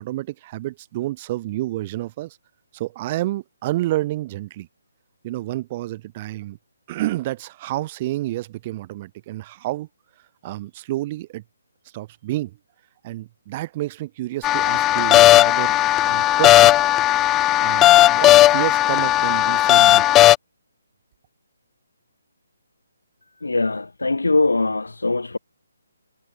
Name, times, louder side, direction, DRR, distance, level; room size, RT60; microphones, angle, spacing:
voice 1, 0.0-2.4 2.7-4.7 5.2-6.6 6.9-9.9 10.4-11.4 11.9-12.6 13.0-16.8 17.6-20.0, right 16 dB, 30° right, 3.1 m, -29 dB
sound 1, 14.4-20.3, left 14 dB, 15° left, 0.6 m, -15 dB
voice 2, 23.4-25.4, left 3 dB, 80° left, 1.5 m, -21 dB
figure-of-eight pair, 145°, 0 cm